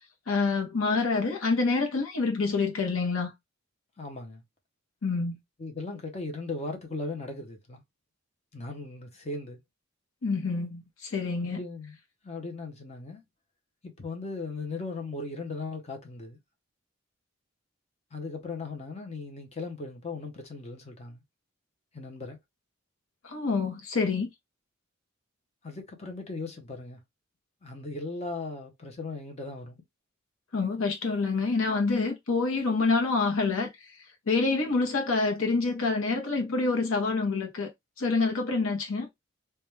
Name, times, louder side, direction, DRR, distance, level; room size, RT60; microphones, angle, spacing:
voice 1, 0.3-3.3 5.0-5.4 10.2-11.6 23.3-24.3 30.5-33.7 34.3-37.7 38.0-39.1, left 4 dB, 80° left, 0.8 m, -27 dB
voice 2, 4.0-4.4 5.6-7.8 8.5-9.6 11.4-12.0 12.2-13.2 13.8-16.4 18.1-21.2 21.9-22.4 25.6-27.0 27.6-29.8, left 3 dB, 30° left, 0.6 m, -38 dB
2.2 x 2.2 x 3.0 m
head